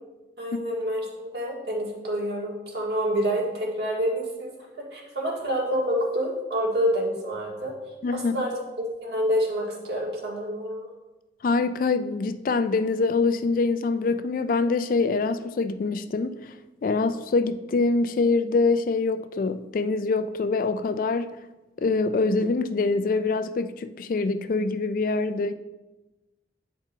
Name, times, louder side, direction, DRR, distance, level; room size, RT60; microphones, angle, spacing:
voice 1, 0.4-4.5 4.9-7.7 8.1-8.5 8.8-10.9, equal, 60° right, -3 dB, 1.9 m, -27 dB
voice 2, 8.0-8.5 11.4-16.5 16.8-21.3 21.8-25.5, left 3 dB, 45° left, 11 dB, 0.3 m, -24 dB
9.3 x 4.4 x 3.9 m, 1.1 s
head